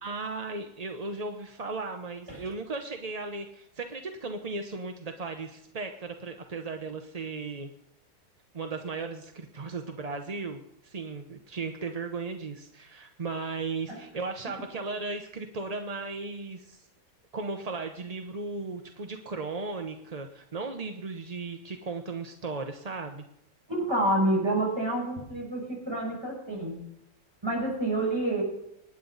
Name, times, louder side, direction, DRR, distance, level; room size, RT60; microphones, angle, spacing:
voice 1, 0.0-7.7 8.5-16.8 17.3-23.2, right 3 dB, 35° right, 5 dB, 0.7 m, -36 dB
voice 2, 23.7-26.8 27.4-28.4, right 1 dB, 15° right, -3 dB, 6.0 m, -28 dB
25.5 x 10.0 x 4.0 m, 0.79 s
omnidirectional pair, 1.8 m